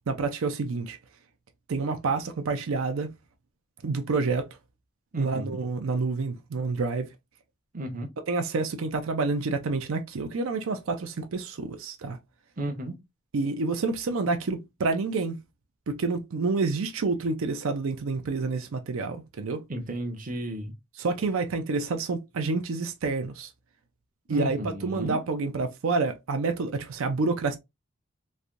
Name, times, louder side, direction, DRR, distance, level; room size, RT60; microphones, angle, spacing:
voice 1, 0.1-1.0 1.7-3.1 3.8-4.5 5.2-7.1 8.3-12.2 13.3-15.4 15.9-19.6 21.0-23.5 24.3-27.6, right 3 dB, 80° right, 0.5 m, -28 dB
voice 2, 5.1-5.6 7.7-8.1 12.6-12.9 19.7-20.7 24.3-25.2, right 1 dB, 40° right, 0.6 m, -33 dB
3.2 x 2.6 x 2.4 m
head